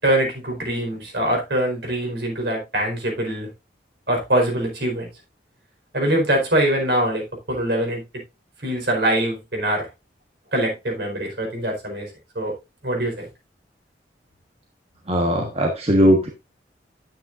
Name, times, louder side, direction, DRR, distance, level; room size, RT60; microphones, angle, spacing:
voice 1, 0.0-3.5 4.1-5.1 5.9-8.0 8.6-9.9 10.5-12.1 12.3-12.5 12.8-13.2, right 1 dB, 65° right, 1 dB, 4.7 m, -23 dB
voice 2, 15.1-16.3, equal, 35° right, 2 dB, 1.4 m, -18 dB
10.5 x 9.0 x 2.6 m, 0.24 s
head